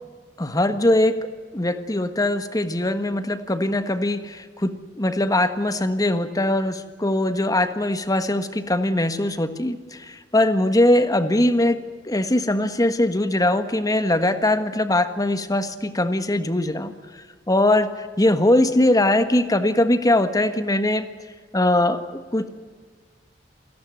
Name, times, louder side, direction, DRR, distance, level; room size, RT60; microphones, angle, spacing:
voice 1, 0.4-1.1 1.5-4.7 5.0-9.8 10.3-11.8 12.1-16.9 17.5-17.9 18.2-21.0 21.5-22.0 22.3-22.5, left 1 dB, 20° left, 10 dB, 1.5 m, -21 dB
28.0 x 18.0 x 7.8 m, 1.5 s
head